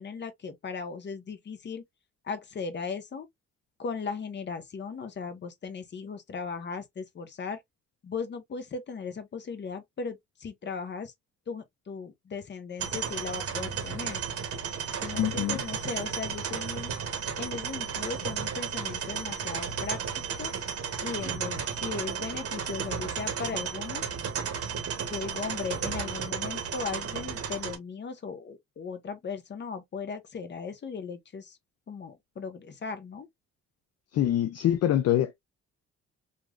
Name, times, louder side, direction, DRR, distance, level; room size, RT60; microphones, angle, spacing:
voice 1, 0.0-1.8 2.2-3.3 3.8-7.6 8.0-11.1 11.5-14.2 15.0-16.9 17.4-20.5 21.0-24.1 25.1-31.6 31.9-33.3, left 5 dB, 35° left, 0.8 m, -37 dB
sound 1, 12.8-27.8, right 7 dB, 50° right, 0.8 m, -33 dB
voice 2, 15.2-15.6 34.1-35.4, left 12 dB, 55° left, 0.4 m, -25 dB
3.0 x 2.5 x 2.2 m
cardioid pair, 90°, 30 cm